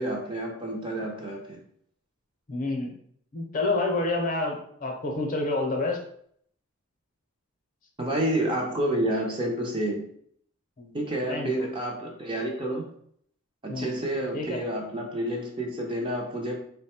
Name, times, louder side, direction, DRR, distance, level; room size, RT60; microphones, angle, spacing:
voice 1, 0.0-1.6 8.0-10.1 10.9-12.9 13.6-16.6, right 1 dB, 20° right, 0 dB, 0.5 m, -29 dB
voice 2, 2.5-2.9 3.3-6.0 10.8-11.0 11.3-11.7 13.7-14.0 14.3-14.6, left 2 dB, 35° left, 2 dB, 0.7 m, -28 dB
3.9 x 2.1 x 4.2 m, 0.66 s
head